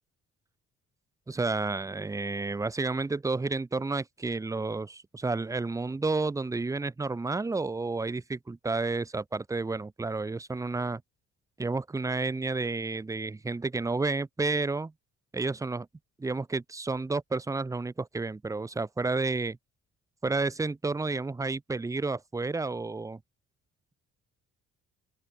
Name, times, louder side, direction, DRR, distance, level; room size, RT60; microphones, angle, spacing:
voice 1, 1.3-11.0 11.6-14.9 15.3-15.9 16.2-19.6 20.2-23.2, right 3 dB, 10° right, 0.5 m, -31 dB
open air
cardioid pair, 90°, 30 cm